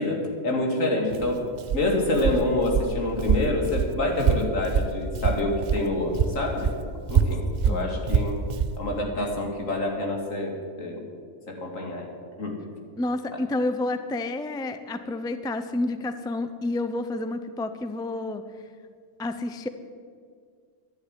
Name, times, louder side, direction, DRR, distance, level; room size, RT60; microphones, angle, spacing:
voice 1, 0.0-1.4 1.7-6.7 7.1-8.3 8.8-11.0 11.5-12.1 12.4-12.6, left 2 dB, 80° left, 0 dB, 2.9 m, -27 dB
Walk footsteps, 1.1-5.9 6.1-8.8, right 6 dB, 50° right, 0.5 m, -25 dB
voice 2, 7.7-8.0 13.0-18.4 19.2-19.7, left 2 dB, 5° left, 10 dB, 0.4 m, -29 dB
11.5 x 10.5 x 9.8 m, 2.1 s
omnidirectional pair, 1.4 m